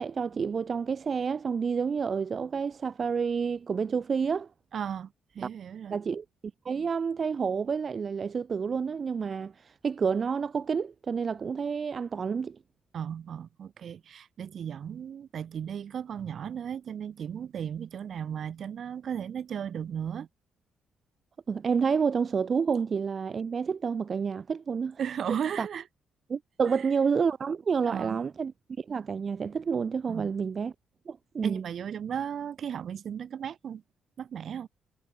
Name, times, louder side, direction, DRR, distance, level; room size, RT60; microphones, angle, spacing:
voice 1, 0.0-4.5 5.9-6.2 6.7-12.6 21.5-25.0 25.6-25.7 26.3-28.5 28.8-30.7 31.1-31.6, right 6 dB, 45° right, 0.3 m, -29 dB
voice 2, 4.7-6.0 12.9-20.3 25.0-25.8 26.7-26.8 27.9-28.2 30.1-30.3 31.4-33.8 34.2-34.7, right 8 dB, 60° right, 0.7 m, -35 dB
cardioid pair, 90°, 0 cm